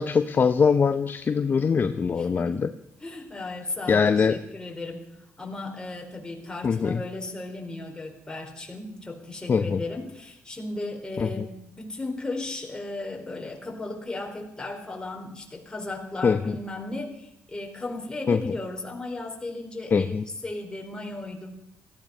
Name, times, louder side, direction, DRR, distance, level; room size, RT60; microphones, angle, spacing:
voice 1, 0.0-2.7 3.9-4.4 6.6-7.0 9.5-9.8 11.2-11.4 16.2-16.5 18.3-18.5 19.9-20.2, left 5 dB, 40° left, 9 dB, 0.7 m, -23 dB
voice 2, 2.2-2.7 3.0-5.1 5.4-20.2 20.4-21.5, left 2 dB, 15° left, 1 dB, 4.3 m, -35 dB
17.5 x 15.0 x 5.5 m, 0.81 s
cardioid pair, 80°, 5 cm